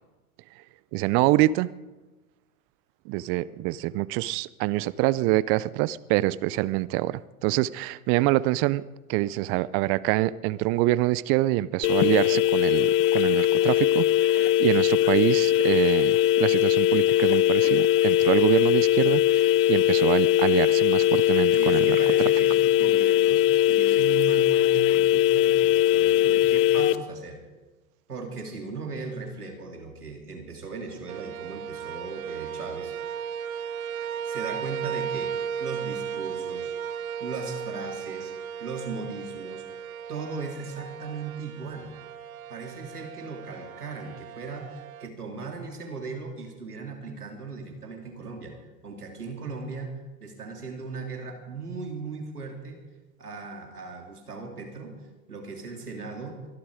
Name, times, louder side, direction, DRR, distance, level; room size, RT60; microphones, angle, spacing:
voice 1, 0.9-1.7 3.1-8.8 9.1-22.0, right 17 dB, 30° right, 0.5 m, -25 dB
sound 1, 11.8-26.9, left 14 dB, 35° left, 0.6 m, -21 dB
voice 2, 21.5-27.4 28.1-32.9 34.0-35.3 35.6-36.7 37.2-38.3 38.6-39.7 40.1-41.9 42.5-48.6 48.8-49.9 50.2-52.8 53.2-54.9 55.3-56.4, right 4 dB, 90° right, 3.4 m, -38 dB
sound 2, 31.1-45.1, right 8 dB, 70° right, 1.0 m, -35 dB
23.0 x 12.5 x 5.0 m
hypercardioid pair, 105°, 44 cm